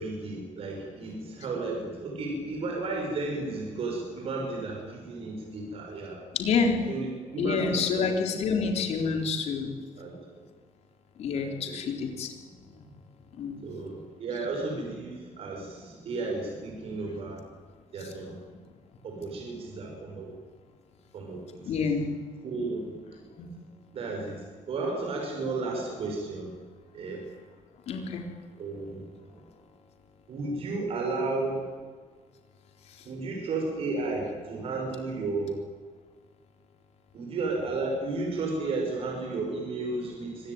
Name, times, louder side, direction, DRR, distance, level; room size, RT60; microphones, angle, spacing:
voice 1, 0.0-6.2 6.9-8.1 8.3-8.6 10.0-10.4 11.3-11.8 13.6-17.5 17.9-18.4 19.0-20.3 21.1-21.9 22.4-23.2 23.9-26.5 26.9-27.3 28.5-29.4 30.3-31.6 33.0-35.6 37.1-40.5, right 3 dB, 50° right, 1 dB, 6.1 m, -33 dB
voice 2, 6.3-6.8 7.4-9.7 11.2-12.3 13.4-13.6 21.7-22.1 23.4-23.5 27.9-28.2, left 5 dB, 60° left, 3 dB, 4.0 m, -28 dB
24.5 x 17.5 x 9.6 m, 1.5 s
cardioid pair, 145°, 13 cm